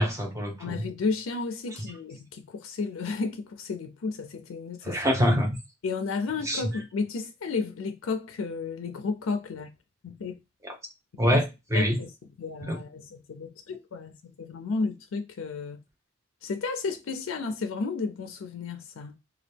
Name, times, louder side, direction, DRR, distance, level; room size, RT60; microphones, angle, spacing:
voice 1, 0.0-0.8 4.8-5.6 6.5-6.6 10.6-10.7 11.2-12.0 12.7-12.8, equal, 15° right, 0.7 m, -25 dB
voice 2, 0.6-5.0 5.8-9.7 10.0-10.4 11.3-11.4 11.7-12.1 12.4-15.8 16.4-19.2, left 4 dB, 85° left, 0.4 m, -32 dB
2.8 x 2.3 x 3.3 m
head